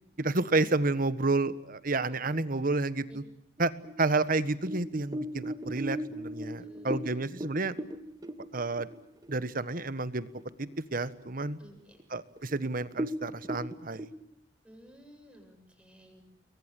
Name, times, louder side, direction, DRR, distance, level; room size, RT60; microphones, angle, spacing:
voice 1, 0.2-3.2 3.6-3.7 4.0-7.7 8.5-8.9 9.3-10.3 10.6-11.6 12.1-14.1, right 3 dB, 50° right, 14 dB, 1.4 m, -30 dB
voice 2, 2.1-2.4 3.1-3.2 6.6-7.3 11.6-12.0 14.6-16.2, equal, 5° right, 4 dB, 7.9 m, -54 dB
sound 1, 3.8-9.4 9.8-9.9 10.3-10.8 11.2-11.3 12.0-12.1 12.4-12.5 12.9-14.1, equal, 20° right, 1.7 m, -38 dB
29.5 x 22.5 x 8.4 m, 0.76 s
head